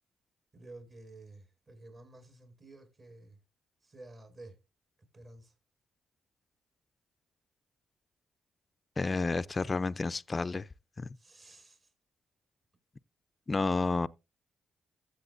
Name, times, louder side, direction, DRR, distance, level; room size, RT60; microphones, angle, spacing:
voice 1, 0.5-3.4 3.8-4.6 5.1-5.5 11.1-11.9, right 2 dB, 40° right, 6.4 m, -52 dB
voice 2, 9.0-10.7 11.0-11.2 13.5-14.1, left 3 dB, 35° left, 0.5 m, -30 dB
15.0 x 8.0 x 2.6 m
cardioid pair, 70°, 0 cm